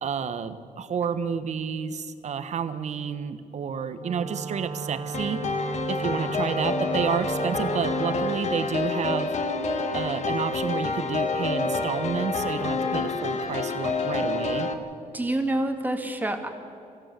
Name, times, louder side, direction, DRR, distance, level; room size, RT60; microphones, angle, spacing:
voice 1, 0.0-5.4 5.9-9.3 9.9-14.7, right 6 dB, 55° right, 10 dB, 1.4 m, -30 dB
Wind instrument woodwind instrument, 3.9-8.4, right 5 dB, 35° right, 0.7 m, -35 dB
sound 1, 5.1-14.7, left 3 dB, 55° left, 1.8 m, -28 dB
voice 2, 15.1-16.5, right 1 dB, 10° right, 4 dB, 2.6 m, -27 dB
25.0 x 16.5 x 7.9 m, 2.6 s
cardioid pair, 95°, 14 cm